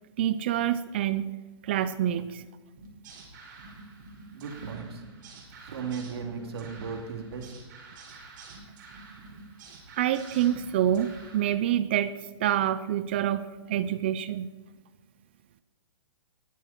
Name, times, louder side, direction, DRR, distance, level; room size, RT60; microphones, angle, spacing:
voice 1, 0.2-1.3 1.6-2.4 10.0-12.1 12.4-14.5, right 11 dB, 20° right, 14 dB, 0.4 m, -27 dB
sound 1, 2.8-11.5, right 3 dB, 40° right, 5.3 m, -48 dB
voice 2, 4.3-5.0 5.6-7.5, right 6 dB, 55° right, 3 dB, 3.0 m, -36 dB
20.5 x 14.0 x 4.4 m, 1.2 s
hypercardioid pair, 170°, 16 cm